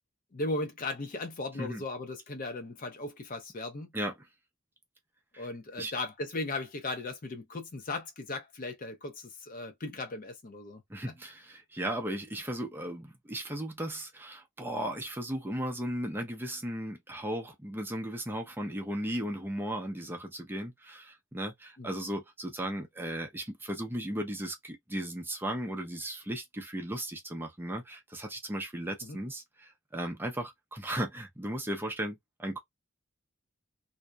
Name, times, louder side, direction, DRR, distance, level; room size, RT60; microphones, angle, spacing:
voice 1, 0.3-3.9 5.4-10.8 21.8-21.9 29.0-29.2, left 2 dB, 45° left, 0.6 m, -37 dB
voice 2, 10.9-32.6, right 1 dB, 10° right, 0.5 m, -36 dB
2.6 x 2.0 x 2.3 m
head